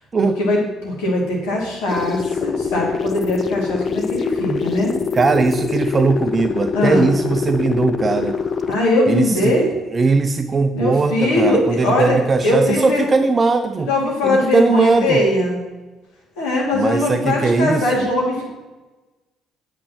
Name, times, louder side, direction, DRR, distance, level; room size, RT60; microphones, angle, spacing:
voice 1, 0.2-0.6 0.8-4.9 6.7-7.1 8.7-9.7 10.7-12.2 12.4-13.0 13.9-15.6 16.4-18.5, left 1 dB, 70° left, -3 dB, 2.5 m, -20 dB
sound 1, 1.9-8.8, left 5 dB, 40° left, 0.6 m, -24 dB
voice 2, 5.1-8.4 9.1-9.5 9.9-13.9 14.2-15.2 16.7-18.0, right 4 dB, 35° right, 8 dB, 0.5 m, -19 dB
8.6 x 8.5 x 3.0 m, 1.2 s
figure-of-eight pair, 50°, 0 cm